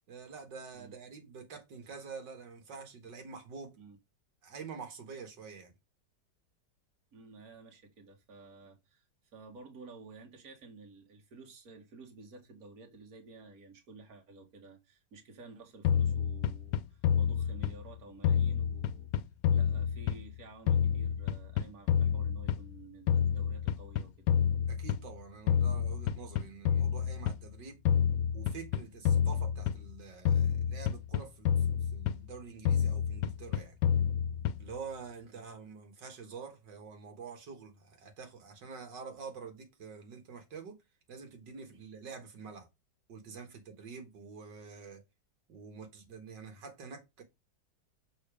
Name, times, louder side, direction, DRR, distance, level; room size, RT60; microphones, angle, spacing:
voice 1, 0.1-3.8 4.4-5.7 24.7-27.8 28.3-33.8 34.6-40.8 41.1-42.7 43.1-45.0 45.5-47.2, right 5 dB, 80° right, 2.2 m, -47 dB
voice 2, 7.1-9.1 9.3-19.1 19.5-24.3 35.3-35.4 41.7-41.9, right 3 dB, 55° right, 2.2 m, -53 dB
sound 1, 15.8-17.9 18.2-20.4 20.7-22.8 23.1-25.2 25.5-27.4 27.8-30.0 30.2-32.3 32.6-34.8, left 8 dB, 90° left, 1.3 m, -29 dB
6.8 x 4.2 x 4.9 m
omnidirectional pair, 1.9 m